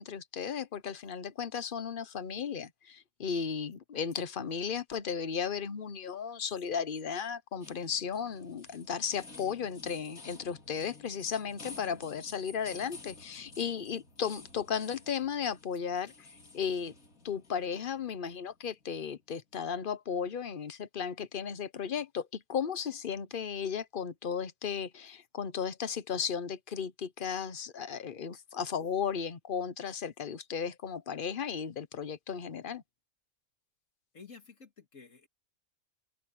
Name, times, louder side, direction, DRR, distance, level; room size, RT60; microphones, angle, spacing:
voice 1, 0.0-16.3 16.5-16.9 17.2-32.8, left 7 dB, 45° left, 1.0 m, -35 dB
sound 1, 7.6-19.2, left 3 dB, 85° left, 4.0 m, -52 dB
voice 2, 34.1-35.3, left 5 dB, 65° left, 2.5 m, -52 dB
open air
omnidirectional pair, 1.4 m